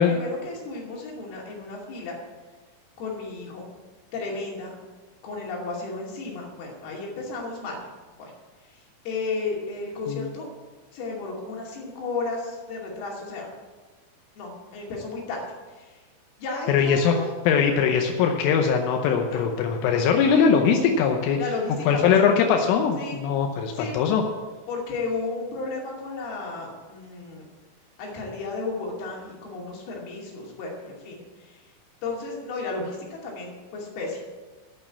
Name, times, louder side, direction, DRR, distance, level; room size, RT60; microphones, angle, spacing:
voice 1, 0.0-2.2 3.0-3.7 4.1-4.8 5.2-7.9 8.2-8.3 8.7-10.5 10.9-13.5 14.4-15.4 15.7-16.0 16.4-17.3 19.3-19.5 19.8-20.0 21.4-22.3 23.0-23.2 23.7-23.9 24.7-27.4 28.0-31.6 32.0-34.2, left 3 dB, 55° left, -2 dB, 4.2 m, -33 dB
voice 2, 16.7-17.1 17.5-21.4 21.9-24.2, left 6 dB, 85° left, 3 dB, 3.4 m, -21 dB
8.9 x 8.8 x 8.5 m, 1.3 s
omnidirectional pair, 5.6 m